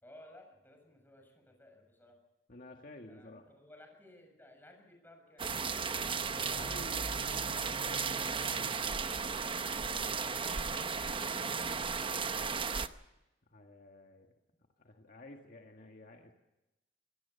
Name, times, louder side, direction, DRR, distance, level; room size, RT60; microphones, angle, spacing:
voice 1, 0.0-2.2 3.1-5.5 10.1-11.0, left 1 dB, 10° left, 2 dB, 6.7 m, -57 dB
voice 2, 2.5-3.5 6.4-9.3 13.5-14.3 14.8-16.3, left 1 dB, 50° left, 3 dB, 1.8 m, -52 dB
sound 1, 5.4-12.9, right 5 dB, 30° right, 0.8 m, -35 dB
25.0 x 18.0 x 7.0 m, 0.97 s
head